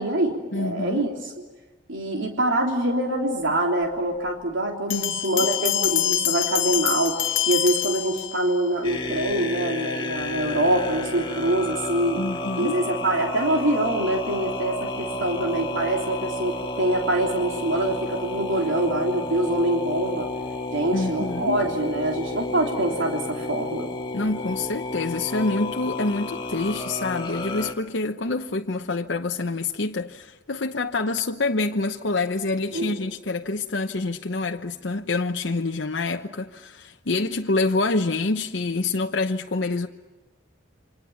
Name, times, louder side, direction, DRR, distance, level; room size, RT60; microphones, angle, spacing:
voice 1, 0.0-1.3 1.9-7.2 7.5-12.2 12.6-20.3 20.7-23.9 32.7-33.0, right 1 dB, 85° right, 3.4 m, -25 dB
voice 2, 0.5-1.1 4.9-5.5 12.2-12.8 20.9-21.6 24.1-39.9, left 3 dB, 65° left, 0.9 m, -27 dB
Bell, 4.9-8.7, left 13 dB, 90° left, 1.2 m, -25 dB
sound 1, 8.8-27.7, left 2 dB, 25° left, 2.0 m, -31 dB
28.5 x 25.5 x 7.2 m
head